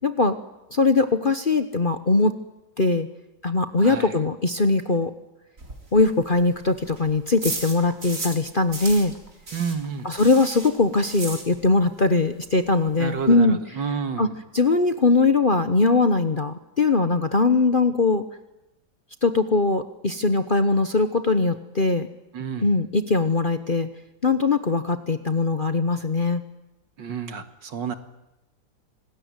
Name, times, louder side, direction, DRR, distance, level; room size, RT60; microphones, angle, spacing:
voice 1, 0.0-0.4 0.7-2.3 2.8-3.1 3.4-5.1 5.9-9.1 10.0-13.6 14.2-14.3 14.5-18.2 19.2-22.1 22.6-23.9 24.2-26.4, left 3 dB, 35° left, 9 dB, 1.0 m, -21 dB
voice 2, 3.8-4.1 9.5-10.2 13.0-14.3 22.3-22.7 27.0-28.0, right 6 dB, 70° right, 8 dB, 2.4 m, -30 dB
sound 1, 5.6-8.4 8.7-11.9 12.2-12.3 12.6-12.7 12.9-13.3, right 2 dB, 45° right, 4.2 m, -35 dB
26.5 x 20.0 x 9.7 m, 0.94 s
omnidirectional pair, 2.0 m